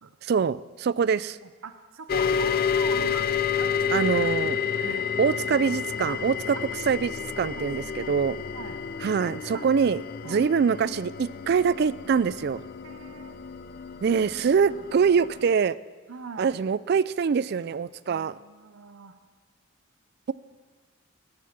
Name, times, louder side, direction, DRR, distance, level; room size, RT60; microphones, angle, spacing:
voice 1, 0.2-1.4 3.9-6.6 6.9-8.4 9.0-12.6 14.0-15.8 16.4-18.4, right 6 dB, 50° right, 19 dB, 0.3 m, -24 dB
voice 2, 1.6-4.5 4.9-5.0 6.1-6.2 6.5-6.7 7.4-8.2 8.5-8.8 9.5-9.7 10.2-10.5 12.8-13.4 16.1-16.5 18.1-19.2, right 5 dB, 75° right, 9 dB, 0.7 m, -42 dB
sound 1, 2.1-15.5, left 6 dB, 45° left, 0.4 m, -30 dB
19.5 x 7.5 x 5.9 m, 1.4 s
head